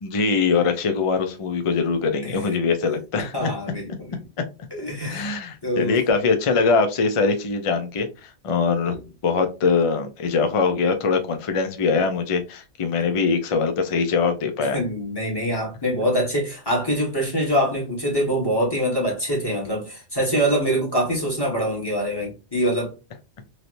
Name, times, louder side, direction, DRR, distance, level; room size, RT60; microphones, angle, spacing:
voice 1, 0.0-3.5 5.0-9.0 9.2-14.8, left 4 dB, 45° left, 0.4 m, -22 dB
voice 2, 3.2-4.2 4.7-5.4 5.6-6.0 8.8-9.0 14.7-22.9, equal, 20° left, 1.3 m, -24 dB
3.2 x 2.7 x 2.5 m
omnidirectional pair, 1.3 m